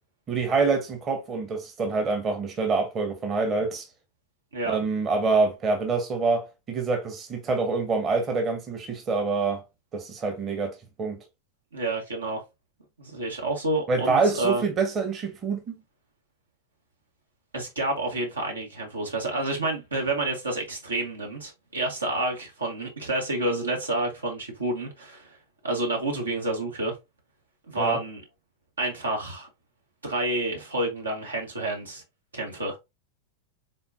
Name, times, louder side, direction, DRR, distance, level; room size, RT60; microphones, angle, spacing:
voice 1, 0.3-3.9 4.6-9.6 9.9-11.2 13.9-15.7 27.8-28.0, right 4 dB, 25° right, 1.0 m, -26 dB
voice 2, 11.7-12.4 13.0-14.6 17.5-25.4 25.6-26.9 27.7-28.2 28.8-29.5 30.0-32.0 32.3-32.8, right 2 dB, 75° right, 1.4 m, -29 dB
4.3 x 3.7 x 2.4 m
figure-of-eight pair, 90°, 0 cm